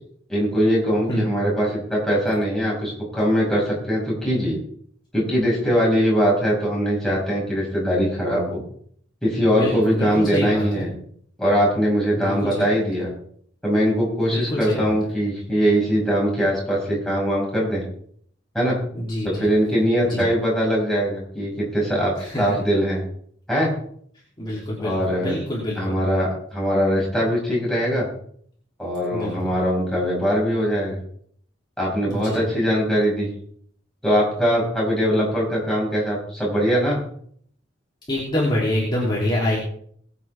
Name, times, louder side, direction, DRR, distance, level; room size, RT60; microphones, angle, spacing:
voice 1, 0.3-4.6 5.1-8.6 9.2-10.9 11.4-13.1 13.6-17.9 18.5-18.8 19.2-23.0 23.5-23.8 24.8-25.4 25.7-28.1 28.8-31.0 31.8-33.3 34.0-37.0, equal, ahead, -6 dB, 6.0 m, -21 dB
voice 2, 9.5-10.9 12.2-12.7 14.2-14.9 18.9-19.5 20.0-20.2 22.2-22.6 24.4-26.0 29.1-29.5 32.1-32.4 35.1-35.2 38.1-39.6, left 1 dB, 25° left, -6 dB, 3.3 m, -26 dB
21.5 x 8.6 x 3.6 m, 0.63 s
head